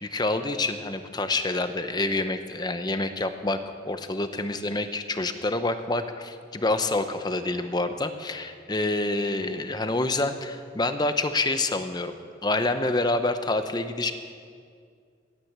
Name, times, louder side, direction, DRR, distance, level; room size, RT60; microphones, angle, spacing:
voice 1, 0.0-12.1 12.4-14.1, left 2 dB, 25° left, 9 dB, 0.8 m, -27 dB
17.0 x 9.8 x 7.4 m, 2.2 s
head